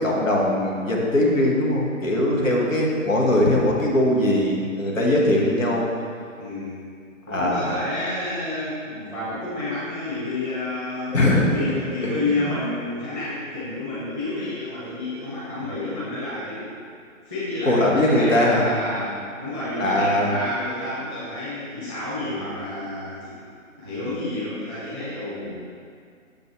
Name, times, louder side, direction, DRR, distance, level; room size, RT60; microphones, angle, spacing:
voice 1, 0.0-5.9 7.3-7.7 11.1-11.7 12.0-12.1 12.5-12.6 17.7-18.6 19.8-20.3, left 1 dB, 70° left, -2 dB, 1.4 m, -20 dB
voice 2, 6.4-6.8 7.2-16.7 17.3-23.3 23.8-25.6, left 2 dB, 10° left, -12 dB, 1.2 m, -30 dB
7.1 x 3.9 x 4.5 m, 2.2 s
figure-of-eight pair, 145°, 40 cm